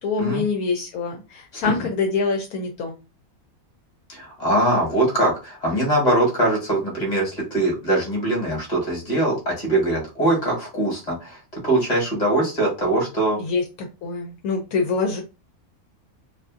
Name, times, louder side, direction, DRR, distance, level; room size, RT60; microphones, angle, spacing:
voice 1, 0.0-3.0 13.4-15.2, left 4 dB, 75° left, 2 dB, 1.0 m, -25 dB
voice 2, 4.1-13.4, right 1 dB, 30° left, -1 dB, 1.3 m, -22 dB
2.6 x 2.4 x 2.4 m, 0.29 s
omnidirectional pair, 1.6 m